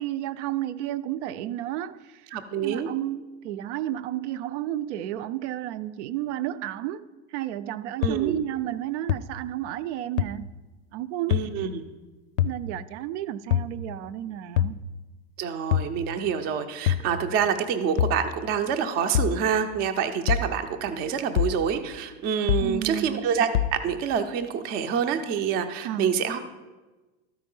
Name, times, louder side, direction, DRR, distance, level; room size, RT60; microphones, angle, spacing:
voice 1, 0.0-2.3 2.6-10.5 10.9-11.3 12.4-14.8 22.6-23.3 25.8-26.3, right 13 dB, 70° right, 0.6 m, -32 dB
voice 2, 2.3-2.9 8.0-8.4 11.3-11.8 15.4-26.4, right 7 dB, 25° right, 0.5 m, -27 dB
sound 1, 8.0-8.1 9.1-9.2 10.2-10.3 11.3-11.5 12.4-12.6 13.5-13.7 14.6-14.8 15.7-15.9 16.9-17.1 18.0-18.2 19.1-19.4 20.3-20.5 21.4-21.6 22.5-22.7 23.5-23.8, left 11 dB, 85° left, 0.6 m, -23 dB
13.0 x 4.7 x 5.3 m
supercardioid pair, 165°, 36 cm